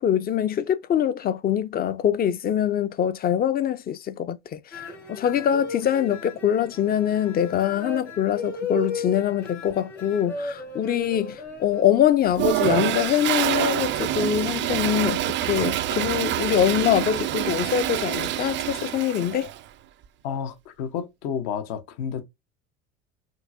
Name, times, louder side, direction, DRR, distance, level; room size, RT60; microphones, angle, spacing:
voice 1, 0.0-19.5, left 10 dB, 25° left, 0.5 m, -24 dB
sound 1, 4.7-11.8, left 2 dB, 80° left, 1.9 m, -35 dB
Toilet flush, 12.3-19.6, right 13 dB, 35° right, 0.4 m, -26 dB
voice 2, 20.2-22.2, left 7 dB, 55° left, 0.9 m, -31 dB
5.5 x 2.7 x 2.5 m
figure-of-eight pair, 65°, 35 cm